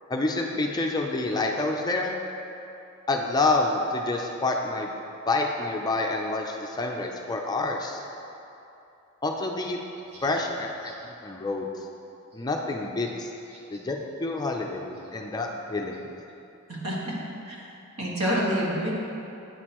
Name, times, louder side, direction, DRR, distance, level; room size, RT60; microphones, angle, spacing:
voice 1, 0.1-2.1 3.1-4.9 5.3-8.0 9.2-9.8 10.2-11.7 12.3-13.3 13.7-16.0, left 2 dB, 20° left, 1 dB, 0.4 m, -28 dB
voice 2, 18.0-18.9, equal, 75° right, -6 dB, 1.7 m, -27 dB
9.3 x 6.3 x 3.0 m, 2.8 s
head